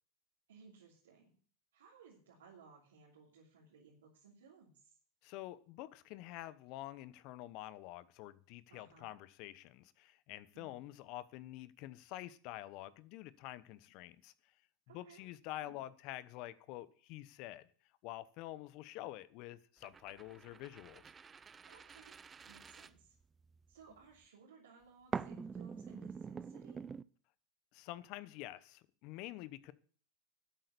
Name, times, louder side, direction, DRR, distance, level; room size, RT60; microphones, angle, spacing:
voice 1, 0.5-1.3 1.7-5.0 8.7-9.1 10.5-10.8 14.9-15.2 15.6-15.8 21.7-22.2 22.5-23.1 23.7-26.9, right 5 dB, 85° right, 3.0 m, -60 dB
voice 2, 5.2-14.3 14.9-17.7 18.0-21.0 27.7-29.7, left 15 dB, 55° left, 0.9 m, -48 dB
sound 1, 19.8-23.6 25.1-27.0, right 6 dB, 25° right, 0.5 m, -46 dB
12.0 x 8.3 x 6.8 m
hypercardioid pair, 100°, 0 cm